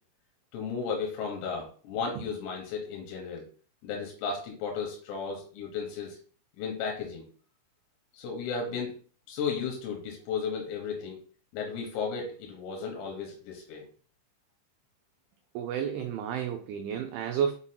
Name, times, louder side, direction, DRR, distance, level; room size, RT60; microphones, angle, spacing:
voice 1, 0.5-3.4 3.8-6.2 6.6-7.2 8.1-8.9 9.3-11.2 11.5-13.8, left 5 dB, 85° left, 1 dB, 3.9 m, -34 dB
voice 2, 15.6-17.5, right 8 dB, 85° right, 4 dB, 2.7 m, -31 dB
8.0 x 5.5 x 2.2 m, 0.43 s
omnidirectional pair, 5.9 m